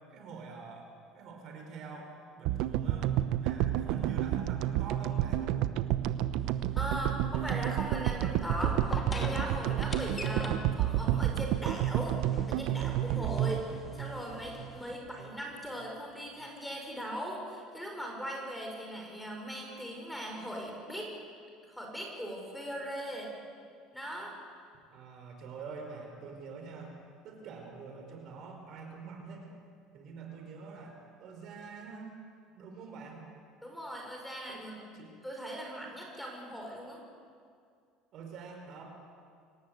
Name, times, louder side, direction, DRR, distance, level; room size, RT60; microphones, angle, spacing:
voice 1, 0.1-5.5 24.9-27.0 27.2-29.5 29.9-32.2 32.6-33.3 34.5-34.7 34.9-35.2 38.1-38.8, right 4 dB, 50° right, 2 dB, 5.3 m, -45 dB
sound 1, 2.4-14.8, right 12 dB, 70° right, 0.9 m, -30 dB
sound 2, 6.4-15.0, left 3 dB, 20° left, 2.5 m, -44 dB
voice 2, 6.8-12.2 12.5-21.1 21.6-23.3 23.9-24.3 33.6-35.0 35.2-37.0, equal, ahead, 0 dB, 4.9 m, -39 dB
25.5 x 18.0 x 8.1 m, 2.3 s
cardioid pair, 135°, 0 cm